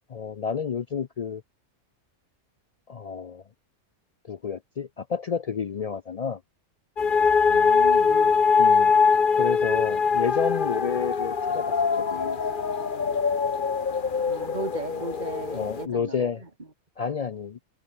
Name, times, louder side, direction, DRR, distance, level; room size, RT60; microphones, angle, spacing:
voice 1, 0.1-1.4 2.9-3.4 4.2-6.4 8.6-8.9 9.3-11.6 12.1-12.4 15.5-16.4 17.0-17.6, left 6 dB, 70° left, 0.3 m, -30 dB
sound 1, 7.0-15.8, left 5 dB, 40° left, 1.3 m, -22 dB
voice 2, 7.5-8.3 14.3-16.7, right 3 dB, 35° right, 2.9 m, -36 dB
omnidirectional pair, 1.3 m